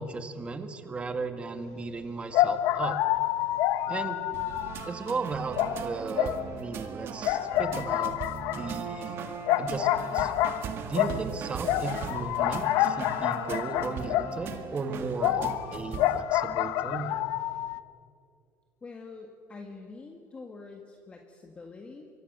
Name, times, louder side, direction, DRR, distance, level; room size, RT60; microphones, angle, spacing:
voice 1, 0.0-3.0 3.9-4.2 4.8-8.1 8.5-9.2 9.6-10.3 10.8-17.2, right 4 dB, 20° right, 8 dB, 1.8 m, -36 dB
sound 1, 1.7-1.8 2.3-5.2 5.5-6.9 7.2-14.6 15.2-17.8, left 13 dB, 75° left, 0.9 m, -28 dB
sound 2, 4.3-16.2, right 7 dB, 50° right, 1.8 m, -39 dB
voice 2, 18.8-22.1, left 3 dB, 20° left, 3 dB, 1.8 m, -45 dB
24.5 x 24.5 x 6.8 m, 2.3 s
cardioid pair, 145°, 5 cm